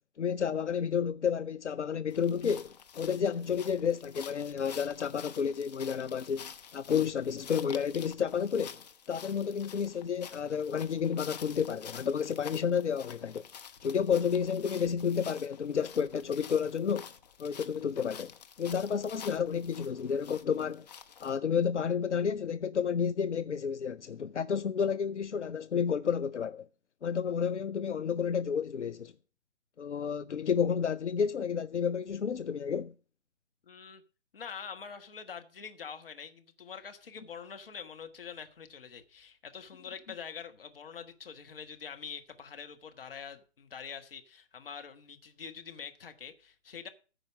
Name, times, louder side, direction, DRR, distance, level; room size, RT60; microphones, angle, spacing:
voice 1, 0.2-8.8 9.1-13.4 13.8-17.1 17.4-18.3 18.6-20.9 21.2-26.7 27.0-29.1 29.8-32.9, left 7 dB, 85° left, 0.5 m, -31 dB
sound 1, 2.1-21.4, left 7 dB, 40° left, 0.8 m, -49 dB
voice 2, 33.6-34.0 34.3-46.9, left 6 dB, 55° left, 1.4 m, -45 dB
14.0 x 5.0 x 6.2 m
figure-of-eight pair, 135°, 34 cm